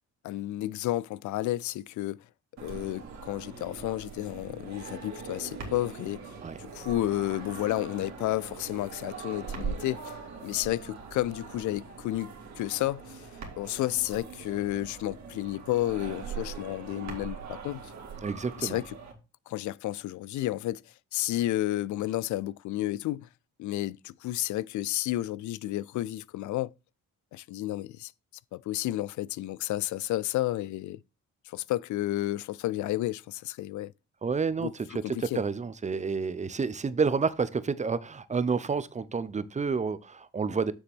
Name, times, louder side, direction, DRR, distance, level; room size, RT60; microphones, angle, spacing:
voice 1, 0.2-2.2 2.6-6.3 6.6-10.2 10.4-13.3 13.6-17.9 18.6-18.9 19.5-20.8 21.1-23.3 23.6-26.7 27.3-28.1 28.5-31.0 31.5-33.9 34.6-35.4, left 15 dB, 75° left, 0.4 m, -31 dB
sound 1, 2.6-19.1, right 5 dB, 65° right, 2.4 m, -42 dB
voice 2, 18.2-18.8 34.2-40.7, right 5 dB, 25° right, 0.7 m, -29 dB
7.0 x 6.7 x 3.5 m
cardioid pair, 90°, 30 cm